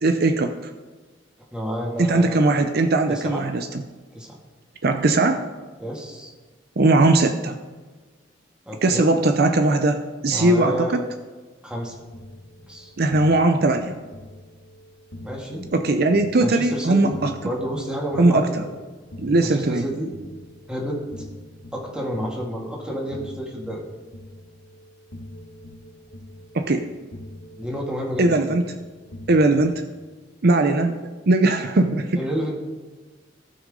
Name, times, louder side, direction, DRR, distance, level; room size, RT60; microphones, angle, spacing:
voice 1, 0.0-0.5 2.0-3.7 4.8-5.4 6.8-7.6 8.8-11.0 13.0-14.0 15.7-17.3 18.2-18.6 19.2-19.8 26.5-26.9 28.2-28.6 29.3-29.8 30.4-31.0 31.3-32.2, right 2 dB, 55° right, 7 dB, 0.6 m, -19 dB
voice 2, 1.5-2.4 3.1-3.4 4.1-4.4 5.8-6.3 8.7-9.1 10.3-11.0 11.6-11.9 12.6-12.9 15.2-15.7 16.4-17.2 17.4-18.4 19.4-20.1 20.7-21.0 21.7-23.8 27.6-28.5 32.1-32.6, equal, 5° right, -2 dB, 2.2 m, -30 dB
sound 1, 11.7-29.7, left 1 dB, 75° left, 1.7 m, -44 dB
18.0 x 6.2 x 3.8 m, 1.3 s
head